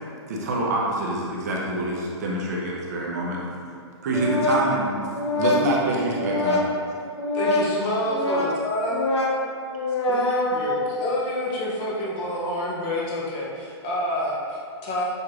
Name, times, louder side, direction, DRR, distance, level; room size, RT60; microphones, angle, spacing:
voice 1, 0.3-3.5 4.0-4.9 5.4-6.6, right 1 dB, 35° right, -3 dB, 0.6 m, -26 dB
voice 2, 4.1-4.6 5.1-5.6 6.0-6.7 7.0-7.7 8.0-8.5 8.9-9.4 9.6-11.0, left 2 dB, 75° left, -2 dB, 0.9 m, -24 dB
voice 3, 7.3-9.0 10.1-15.0, left 1 dB, 20° left, -5 dB, 0.6 m, -28 dB
6.3 x 3.0 x 2.4 m, 2.3 s
hypercardioid pair, 170°, 15 cm